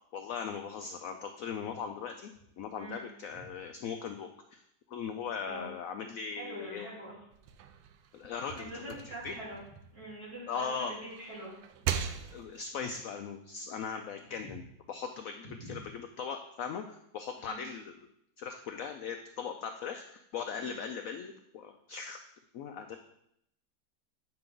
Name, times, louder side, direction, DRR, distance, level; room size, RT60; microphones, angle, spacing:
voice 1, 0.1-2.3 2.6-4.6 4.9-6.9 8.1-9.3 10.5-10.9 12.3-14.6 14.9-17.9 18.4-22.2 22.5-23.0, left 6 dB, 75° left, 6 dB, 0.7 m, -39 dB
voice 2, 6.3-7.1 8.6-9.6 9.9-11.5 15.4-15.8 17.4-17.6 20.6-20.8, right 1 dB, 50° right, -8 dB, 4.2 m, -44 dB
sound 1, 7.3-10.5 10.9-12.7, right 9 dB, 90° right, 1.3 m, -39 dB
8.7 x 5.9 x 3.8 m, 0.76 s
omnidirectional pair, 2.0 m